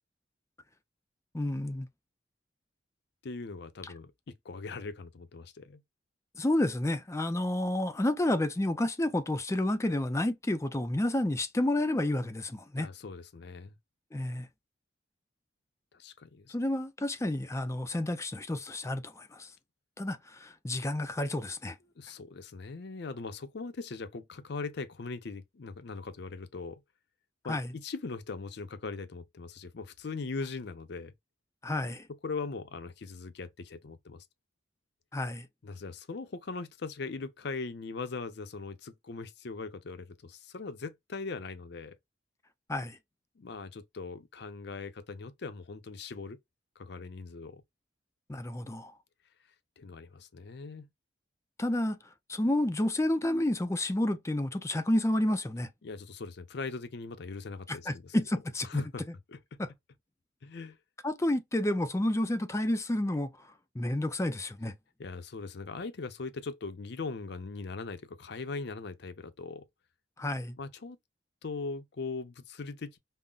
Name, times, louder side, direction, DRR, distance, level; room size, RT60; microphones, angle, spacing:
voice 1, 1.3-1.9 3.8-3.9 6.4-12.9 14.1-14.5 16.5-19.5 20.0-21.8 27.5-27.7 31.6-32.1 35.1-35.5 42.7-43.0 48.3-48.9 51.6-52.0 52.3-55.7 57.7-58.8 59.6-59.7 61.0-63.5 63.7-64.7 70.2-70.6, left 1 dB, 15° left, 0.4 m, -30 dB
voice 2, 3.2-5.8 12.8-13.7 15.9-16.5 22.0-26.8 27.4-31.1 32.2-34.2 35.6-42.0 43.4-46.4 46.8-47.6 49.8-50.9 55.8-58.1 58.7-59.0 59.3-59.4 60.4-60.8 65.0-69.7 70.6-71.0 71.4-73.0, left 4 dB, 65° left, 0.6 m, -40 dB
5.4 x 2.0 x 2.3 m
head